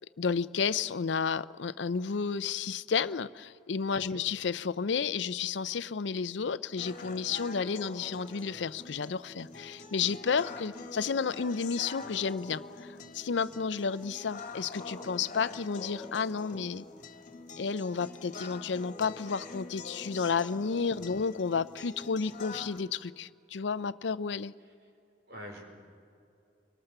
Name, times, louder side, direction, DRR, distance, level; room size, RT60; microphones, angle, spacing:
voice 1, 0.2-16.9 17.6-24.5, left 5 dB, 75° left, 16 dB, 0.5 m, -32 dB
sound 1, 6.8-22.8, left 3 dB, 45° left, 1.8 m, -45 dB
voice 2, 20.9-21.3 25.3-25.7, equal, 65° right, 1 dB, 4.9 m, -46 dB
24.5 x 23.0 x 6.8 m, 2.7 s
head